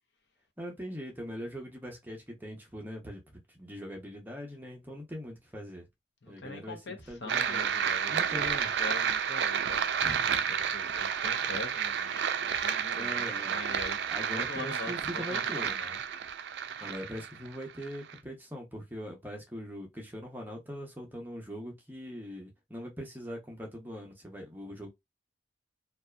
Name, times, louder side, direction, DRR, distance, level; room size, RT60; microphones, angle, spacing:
voice 1, 0.6-5.9 6.3-7.7 8.1-8.7 10.0-10.3 12.9-13.6 14.1-15.7 16.8-24.9, equal, 10° right, 0.6 m, -41 dB
voice 2, 6.2-14.0 14.3-16.0, left 3 dB, 70° left, 0.7 m, -43 dB
sound 1, 7.3-18.2, right 8 dB, 65° right, 0.3 m, -31 dB
2.6 x 2.3 x 2.2 m
head